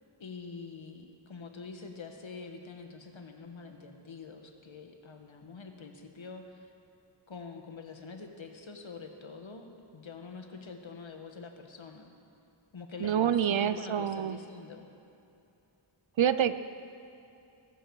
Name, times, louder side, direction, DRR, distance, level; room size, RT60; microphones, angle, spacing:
voice 1, 0.2-6.7 7.3-9.6 9.9-12.1 12.7-14.9, left 4 dB, 70° left, 4 dB, 1.6 m, -45 dB
voice 2, 13.0-14.4 16.2-16.5, right 9 dB, 70° right, 12 dB, 0.7 m, -27 dB
22.0 x 12.5 x 4.8 m, 2.7 s
wide cardioid pair, 90°, 48 cm